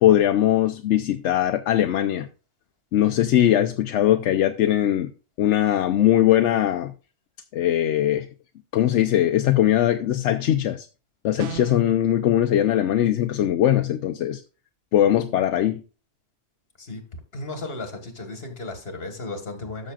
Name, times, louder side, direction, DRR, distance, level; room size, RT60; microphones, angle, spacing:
voice 1, 0.0-2.3 2.9-5.1 5.4-6.9 7.5-8.3 8.7-10.9 11.2-14.4 14.9-15.8, left 12 dB, 80° left, 0.9 m, -20 dB
sound 1, 11.4-11.9, right 9 dB, 80° right, 1.1 m, -35 dB
voice 2, 17.3-19.9, left 2 dB, 55° left, 2.0 m, -35 dB
13.0 x 6.4 x 2.4 m
omnidirectional pair, 1.2 m